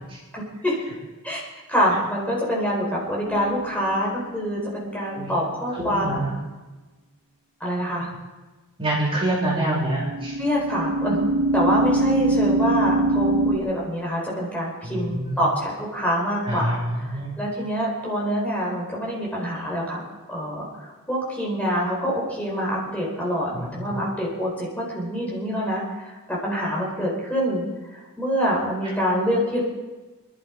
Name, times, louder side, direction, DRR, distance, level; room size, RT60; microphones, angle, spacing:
voice 1, 0.3-0.8 1.2-1.4 1.7-6.3 7.6-8.1 10.4-20.0 20.3-27.6 27.9-29.6, equal, 5° left, -4 dB, 4.4 m, -26 dB
sound 1, 3.3-3.9 10.0-13.6, right 2 dB, 90° right, 2.4 m, -22 dB
voice 2, 5.8-6.3 8.8-10.3 14.8-15.5 16.4-17.3 23.5-23.9, right 1 dB, 25° right, -5 dB, 3.9 m, -26 dB
26.0 x 11.5 x 4.7 m, 1.2 s
head